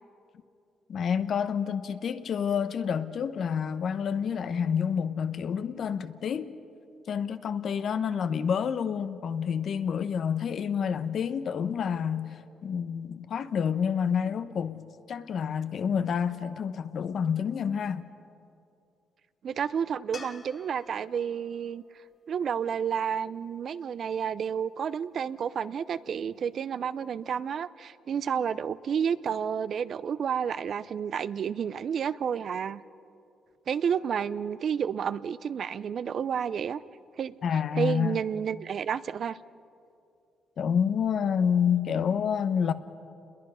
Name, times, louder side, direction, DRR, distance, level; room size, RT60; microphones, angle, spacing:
voice 1, 0.9-6.5 7.1-18.1 37.4-38.2 40.6-42.7, left 7 dB, 60° left, 0.9 m, -28 dB
voice 2, 19.4-21.8 22.3-32.8 33.7-36.8 37.2-37.3 37.8-39.4, right 7 dB, 55° right, 0.5 m, -30 dB
sound 1, 20.1-23.4 26.6-26.7, left 4 dB, 35° left, 1.3 m, -50 dB
28.0 x 21.5 x 5.6 m
cardioid pair, 90°, 0 cm